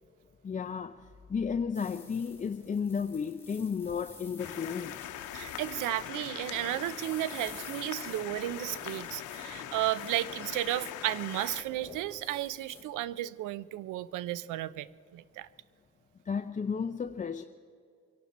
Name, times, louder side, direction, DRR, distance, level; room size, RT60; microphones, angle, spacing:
voice 1, 0.4-1.0 1.3-5.0 16.3-17.4, left 6 dB, 25° left, 7 dB, 0.5 m, -33 dB
sound 1, 1.7-12.8, left 2 dB, 10° left, 2.8 m, -51 dB
sound 2, 4.4-11.6, left 12 dB, 80° left, 0.8 m, -42 dB
voice 2, 5.3-14.9 15.1-15.5, right 14 dB, 85° right, 18 dB, 0.5 m, -33 dB
24.5 x 12.0 x 4.2 m, 2.3 s
cardioid pair, 90°, 30 cm